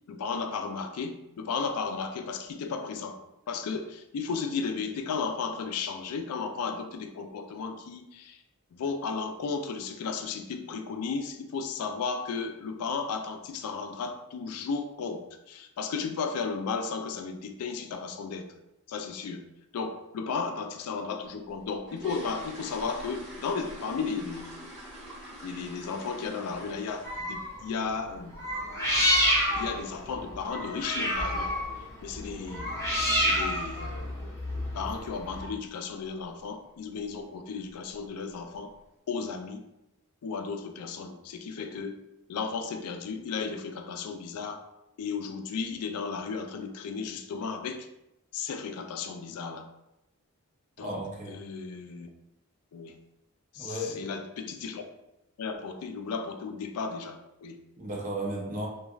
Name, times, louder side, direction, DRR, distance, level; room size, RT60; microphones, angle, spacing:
voice 1, 0.1-3.2 3.5-8.4 8.7-18.5 18.9-19.4 19.7-24.5 25.4-28.4 29.6-31.5 32.0-32.7 33.2-34.2 34.7-38.8 39.1-39.6 40.2-42.0 42.3-44.7 45.0-47.9 48.3-49.7 50.8-50.9 51.3-52.1 52.7-52.9 53.5-54.8 55.4-57.6, left 5 dB, 80° left, 6 dB, 0.3 m, -34 dB
sound 1, 21.5-27.4 27.7-28.0 28.3-28.4 28.8-28.9 29.3-29.5 29.8-29.9 30.5-30.6 30.8-31.0 31.5-31.8 32.1-32.2 32.6-32.8 33.1-33.2 33.6-33.7 34.3-34.7 35.0-35.3 35.7-35.8 36.2-36.3 37.1-37.2 37.6-38.1 38.5-38.6, right 1 dB, 5° right, 1.1 m, -45 dB
sound 2, 27.0-27.6 28.3-35.4, equal, 15° left, 0.6 m, -28 dB
voice 2, 50.8-51.4 53.6-54.1 57.8-58.7, right 1 dB, 35° right, -2 dB, 0.6 m, -34 dB
3.0 x 2.3 x 2.3 m, 0.89 s
head